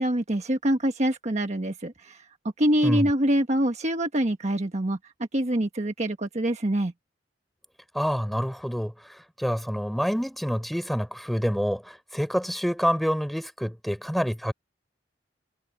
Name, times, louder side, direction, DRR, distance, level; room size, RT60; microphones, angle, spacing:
voice 1, 0.0-2.2 2.6-5.0 5.3-6.9, right 1 dB, 40° right, 1.3 m, -25 dB
voice 2, 7.9-14.5, equal, ahead, 3.9 m, -27 dB
head